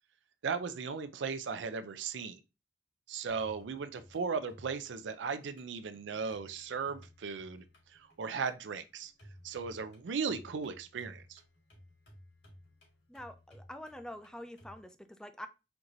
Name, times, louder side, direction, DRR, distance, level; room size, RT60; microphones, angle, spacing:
voice 1, 0.4-2.4 3.1-7.6 7.9-9.1 9.4-11.4, right 5 dB, 90° right, 0.4 m, -37 dB
sound 1, 3.3-14.8, equal, 75° left, 2.6 m, -58 dB
voice 2, 13.1-15.5, left 1 dB, 5° left, 0.4 m, -46 dB
4.5 x 2.6 x 3.8 m
head